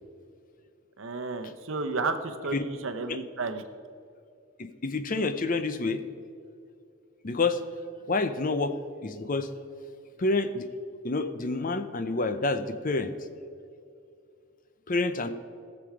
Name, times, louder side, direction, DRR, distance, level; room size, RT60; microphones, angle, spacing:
voice 1, 1.0-3.6, right 3 dB, 60° right, 7 dB, 0.8 m, -32 dB
voice 2, 4.6-6.0 7.2-7.6 8.1-8.7 9.0-9.5 10.2-10.7 11.0-13.1 14.9-15.3, left 3 dB, 35° left, 10 dB, 0.6 m, -28 dB
18.0 x 7.0 x 4.9 m, 2.5 s
head